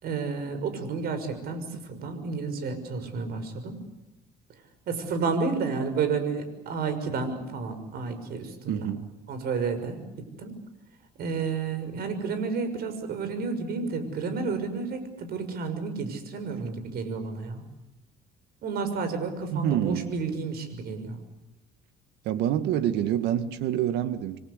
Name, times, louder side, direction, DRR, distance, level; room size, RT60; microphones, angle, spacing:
voice 1, 0.0-3.8 4.9-8.9 9.3-10.6 11.2-17.6 18.6-21.2, right 4 dB, 65° right, 6.3 m, -31 dB
voice 2, 8.7-9.1 19.5-20.1 22.2-24.4, right 11 dB, 85° right, 2.2 m, -27 dB
28.5 x 23.5 x 8.3 m
cardioid pair, 110°, 17 cm